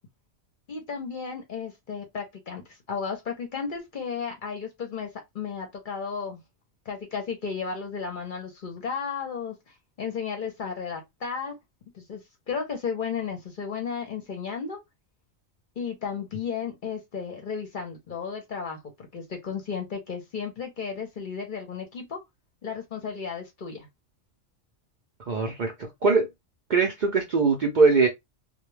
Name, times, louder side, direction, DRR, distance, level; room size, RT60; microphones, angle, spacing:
voice 1, 0.7-5.1 5.3-6.4 6.9-9.5 10.0-11.6 11.9-12.2 12.5-14.8 15.8-22.2 22.6-23.9, left 6 dB, 50° left, 0.7 m, -34 dB
voice 2, 25.3-26.3 26.7-28.1, right 4 dB, 55° right, 0.5 m, -22 dB
2.2 x 2.2 x 3.1 m
omnidirectional pair, 1.3 m